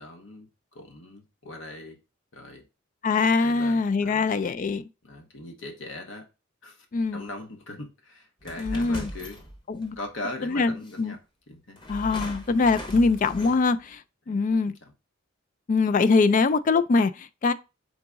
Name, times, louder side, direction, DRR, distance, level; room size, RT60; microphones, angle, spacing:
voice 1, 0.0-2.0 2.3-2.7 3.4-4.3 5.0-6.3 6.6-6.9 7.1-9.4 10.0-11.2 11.5-11.8 14.3-14.9, left 2 dB, 70° left, 1.1 m, -40 dB
voice 2, 3.0-4.8 6.9-7.2 8.6-9.1 9.7-10.0 10.4-11.2 11.9-14.0 14.3-14.7 15.7-17.5, left 4 dB, 40° left, 0.3 m, -23 dB
sound 1, 8.4-10.0 10.8-11.0 11.8-13.9, equal, 25° left, 0.9 m, -39 dB
3.9 x 3.8 x 3.5 m
head